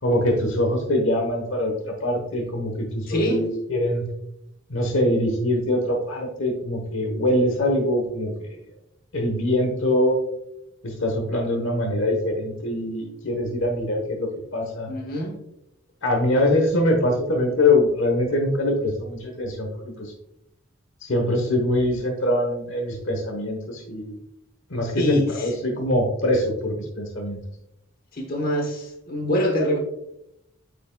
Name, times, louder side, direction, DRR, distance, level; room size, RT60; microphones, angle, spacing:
voice 1, 0.0-4.0 4.7-8.6 9.1-10.2 10.8-14.9 16.0-20.1 21.1-24.2 24.7-27.4, left 1 dB, 75° left, 2 dB, 1.1 m, -23 dB
voice 2, 3.1-3.4 14.9-15.4 25.0-25.5 28.1-29.8, equal, 45° left, 2 dB, 1.1 m, -25 dB
8.7 x 5.0 x 2.3 m, 0.81 s
head